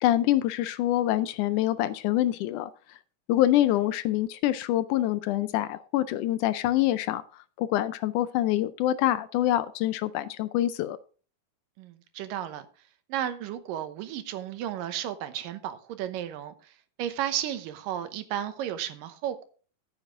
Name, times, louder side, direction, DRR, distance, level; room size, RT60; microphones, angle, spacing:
voice 1, 0.0-2.7 3.3-7.2 7.6-11.0, left 13 dB, 80° left, 1.9 m, -25 dB
voice 2, 11.8-12.6 13.1-16.7 17.0-19.5, right 11 dB, 85° right, 2.7 m, -33 dB
14.0 x 7.3 x 3.6 m
omnidirectional pair, 3.8 m